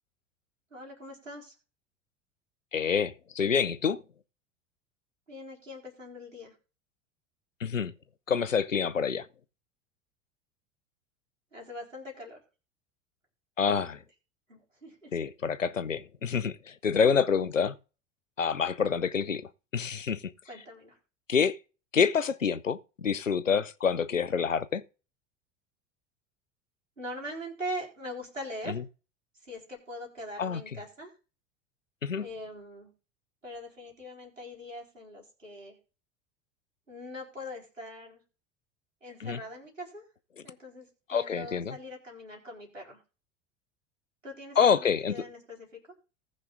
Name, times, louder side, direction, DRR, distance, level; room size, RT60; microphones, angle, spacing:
voice 1, 0.7-1.5 5.3-6.5 11.5-12.4 13.7-14.0 14.5-15.1 20.4-21.0 27.0-28.8 29.4-31.1 32.2-32.9 33.4-35.8 36.9-38.2 39.0-40.0 40.4-43.0 44.2-45.8, equal, 85° right, 4.4 m, -42 dB
voice 2, 2.7-4.0 7.6-7.9 8.3-9.3 13.6-14.0 15.1-17.8 18.4-19.4 19.7-20.2 21.3-21.6 21.9-24.8 28.7-28.8 30.4-30.6 32.0-32.3 39.2-39.4 41.1-41.8 44.6-45.1, left 6 dB, 85° left, 0.7 m, -27 dB
19.5 x 6.7 x 2.6 m
figure-of-eight pair, 75°, 38 cm